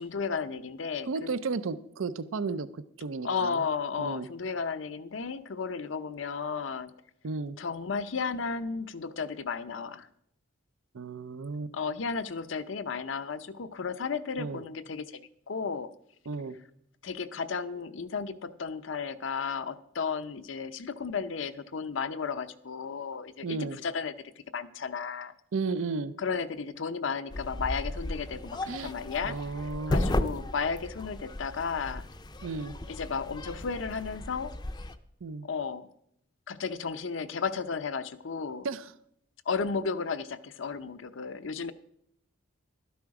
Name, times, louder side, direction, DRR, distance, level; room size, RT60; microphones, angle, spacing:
voice 1, 0.0-1.3 3.2-6.9 7.6-10.1 11.7-15.9 17.0-23.6 23.8-24.1 24.5-25.3 26.2-29.4 29.9-32.0 32.9-34.5 35.4-35.9 36.5-38.7 39.5-41.7, left 5 dB, 70° left, 12 dB, 0.6 m, -33 dB
voice 2, 1.1-3.6 4.0-4.3 7.2-7.6 10.9-11.7 14.4-14.6 16.3-16.6 23.4-23.8 25.5-26.1 28.7-28.9 29.2-30.1 32.4-32.8 35.2-35.5 38.6-38.9, right 4 dB, 85° right, 14 dB, 0.5 m, -34 dB
sound 1, 27.3-34.9, left 1 dB, 20° left, 0.5 m, -35 dB
12.5 x 10.5 x 4.8 m, 0.74 s
head